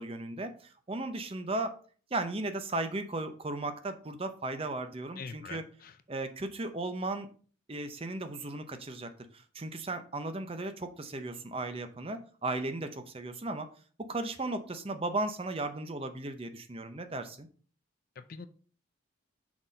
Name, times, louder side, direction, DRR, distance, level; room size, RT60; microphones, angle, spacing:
voice 1, 0.0-1.8 2.1-5.6 6.1-7.3 7.7-13.7 14.0-17.5, right 2 dB, 25° right, 9 dB, 0.6 m, -36 dB
voice 2, 5.2-5.9 18.2-18.5, left 5 dB, 45° left, 11 dB, 0.5 m, -43 dB
6.0 x 4.1 x 5.0 m, 0.42 s
head